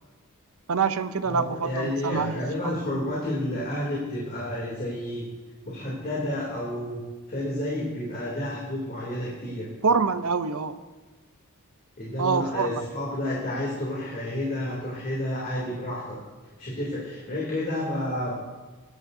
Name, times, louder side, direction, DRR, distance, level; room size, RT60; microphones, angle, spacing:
voice 1, 0.7-2.4 2.6-2.8 9.8-10.8 12.2-12.8, right 5 dB, 70° right, 12 dB, 0.6 m, -25 dB
voice 2, 1.2-5.3 5.6-7.0 7.3-9.7 12.0-16.2 16.6-18.4, left 1 dB, 45° left, -6 dB, 2.9 m, -30 dB
21.0 x 10.5 x 2.7 m, 1.3 s
head